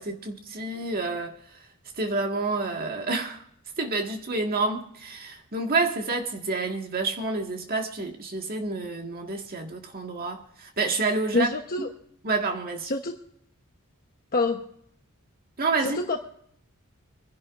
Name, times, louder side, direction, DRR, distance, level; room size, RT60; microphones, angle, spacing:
voice 1, 0.0-1.4 2.0-3.4 3.8-11.5 11.8-11.9 12.2-12.9 15.6-16.0, right 3 dB, 45° right, 1.8 m, -28 dB
voice 2, 11.3-11.9 12.9-13.1 14.3-14.6 15.8-16.2, left 2 dB, 40° left, 1.1 m, -26 dB
26.0 x 11.0 x 2.6 m
head